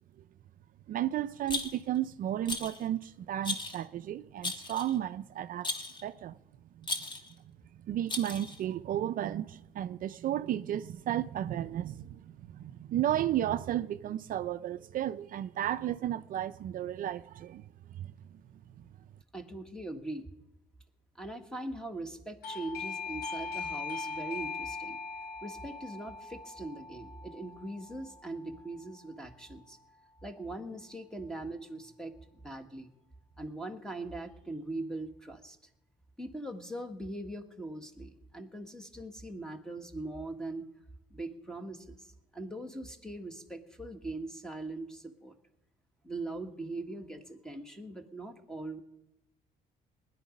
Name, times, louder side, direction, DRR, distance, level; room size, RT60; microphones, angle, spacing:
voice 1, 0.9-6.4 6.8-6.9 7.8-17.7 18.0-18.1 18.8-18.9, right 12 dB, 55° right, 0.5 m, -33 dB
Rattle, 1.5-2.0 2.5-2.8 3.4-3.8 4.4-5.0 5.6-6.0 6.8-7.3 8.1-8.6, left 2 dB, 25° left, 1.7 m, -36 dB
voice 2, 19.3-20.3 21.2-25.0 25.4-29.8 30.2-32.9 33.4-35.6 36.2-40.7 41.1-42.1 42.3-45.4 46.0-48.8, right 2 dB, 5° left, 1.7 m, -41 dB
Doorbell, 22.4-28.9, left 4 dB, 65° left, 1.2 m, -40 dB
20.0 x 11.0 x 5.2 m
cardioid pair, 110°, 17 cm